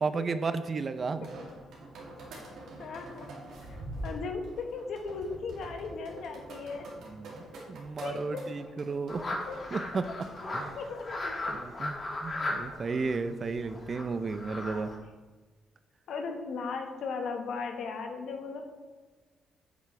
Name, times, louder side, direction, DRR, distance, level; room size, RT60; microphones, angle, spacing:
voice 1, 0.0-1.3 7.1-9.2 9.7-10.1 10.5-10.8 11.5-14.9, right 4 dB, 40° right, 11 dB, 0.5 m, -33 dB
sound 1, 1.0-11.0, right 1 dB, 80° right, 2.6 m, -45 dB
voice 2, 2.8-3.3 3.6-3.8 4.0-6.9 8.0-8.5 9.5-9.6 10.8-11.6 14.6-14.9 16.1-18.6, left 4 dB, 70° left, 4 dB, 1.3 m, -37 dB
sound 2, 9.1-15.0, left 2 dB, 40° left, 2.2 m, -37 dB
9.0 x 8.3 x 3.3 m, 1.3 s
cardioid pair, 90°, 0 cm